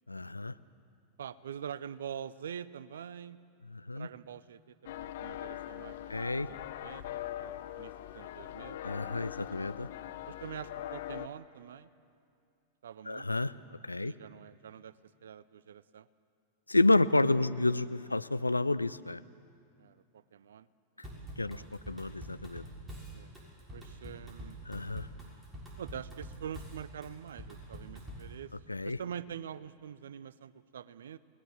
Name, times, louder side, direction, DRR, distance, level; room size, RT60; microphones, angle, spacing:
voice 1, 0.1-0.5 3.7-4.1 6.1-6.5 8.8-9.9 13.1-13.5 13.8-14.1 16.7-19.2 21.0-21.1 21.4-22.6 24.7-25.1 28.7-29.0, left 2 dB, 85° left, 15 dB, 0.5 m, -30 dB
voice 2, 1.2-3.4 3.9-8.8 10.3-11.9 12.8-13.3 14.0-14.9 15.2-16.1 19.8-20.7 21.0-21.7 23.1-23.3 23.7-24.6 25.8-28.5 28.8-31.2, right 8 dB, 65° right, 18 dB, 0.6 m, -45 dB
sound 1, 4.9-11.3, left 12 dB, 55° left, 0.9 m, -42 dB
Drum kit / Drum, 21.0-28.3, right 1 dB, 10° right, 6.3 m, -46 dB
29.0 x 19.5 x 7.5 m, 2.4 s
figure-of-eight pair, 90°, 0 cm